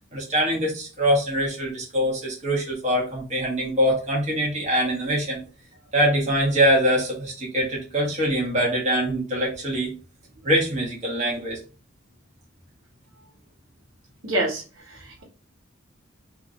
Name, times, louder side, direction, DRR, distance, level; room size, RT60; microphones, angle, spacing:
voice 1, 0.1-5.4 5.9-9.9 10.4-11.6, equal, 35° right, -4 dB, 1.3 m, -23 dB
voice 2, 14.2-14.6 14.9-15.2, right 1 dB, 80° right, -2 dB, 1.2 m, -26 dB
3.5 x 2.6 x 3.1 m, 0.34 s
head